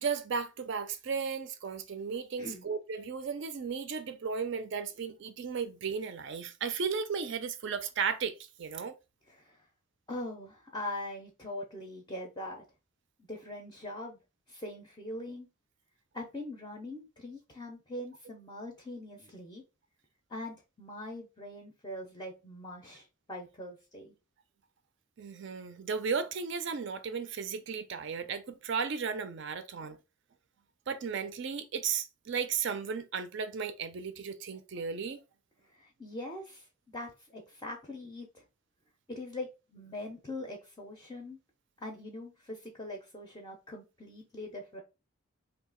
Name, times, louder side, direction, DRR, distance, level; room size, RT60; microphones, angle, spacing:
voice 1, 0.0-8.9 25.2-30.0 30.9-35.2, right 6 dB, 55° right, 0.4 m, -35 dB
voice 2, 9.3-9.7 10.1-12.6 13.3-14.2 14.5-15.5 16.1-19.6 20.3-24.1 35.7-38.4 39.1-41.4 41.8-44.8, left 1 dB, 20° left, 0.5 m, -42 dB
2.7 x 2.3 x 3.7 m
head